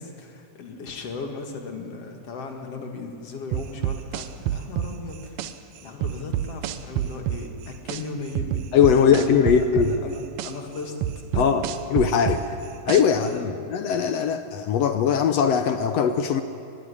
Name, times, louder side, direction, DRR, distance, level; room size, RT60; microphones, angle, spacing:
voice 1, 0.0-5.6 5.8-11.0 11.3-11.6 12.3-12.6 13.1-13.5, left 4 dB, 55° left, 3 dB, 2.7 m, -37 dB
sound 1, 3.5-5.5 6.0-8.0 8.4-10.5 11.0-13.3, right 11 dB, 75° right, 2.1 m, -27 dB
voice 2, 8.7-9.9 11.4-11.6 11.9-12.4 12.9-16.4, left 7 dB, 70° left, 9 dB, 1.6 m, -20 dB
21.5 x 15.5 x 9.9 m, 2.5 s
omnidirectional pair, 3.6 m